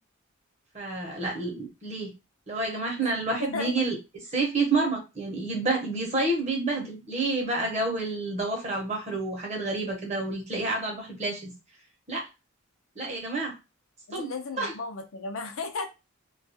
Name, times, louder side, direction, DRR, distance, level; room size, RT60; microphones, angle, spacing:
voice 1, 0.7-2.1 2.5-3.9 4.3-11.5 12.1-12.3 13.0-13.5 14.1-14.3 14.6-14.7, right 3 dB, 30° right, 0 dB, 0.8 m, -29 dB
voice 2, 3.4-3.7 14.1-15.9, left 3 dB, 70° left, 5 dB, 0.5 m, -35 dB
2.3 x 2.3 x 2.6 m, 0.26 s
head